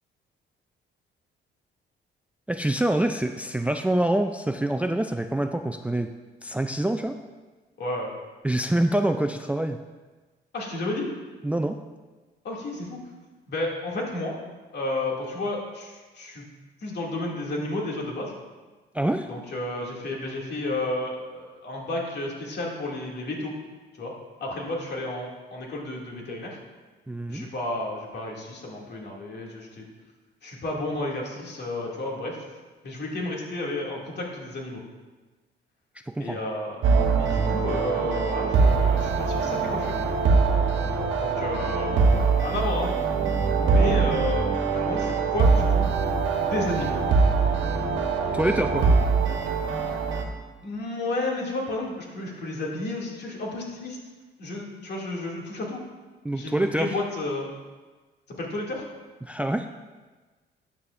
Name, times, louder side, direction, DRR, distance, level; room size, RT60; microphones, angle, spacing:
voice 1, 2.5-6.1 6.4-7.2 8.4-9.8 11.4-11.8 18.9-19.3 27.1-27.5 36.0-36.4 48.3-48.9 56.2-56.9 59.2-59.7, right 1 dB, 5° right, 7 dB, 0.4 m, -26 dB
voice 2, 7.8-8.1 10.5-11.1 12.4-13.0 13.5-14.4 14.7-16.5 16.8-18.4 19.3-23.5 24.0-24.1 24.4-26.6 27.3-29.9 30.4-32.5 32.8-34.8 36.2-36.9 37.2-40.0 41.2-42.9 43.6-45.9 46.4-47.0 50.6-54.0 54.4-55.8 56.3-57.5 58.3-58.9, left 2 dB, 55° left, -2 dB, 2.5 m, -32 dB
sound 1, 36.8-50.2, right 4 dB, 75° right, 1.2 m, -23 dB
12.5 x 8.4 x 2.6 m, 1.3 s
cardioid pair, 90°, 20 cm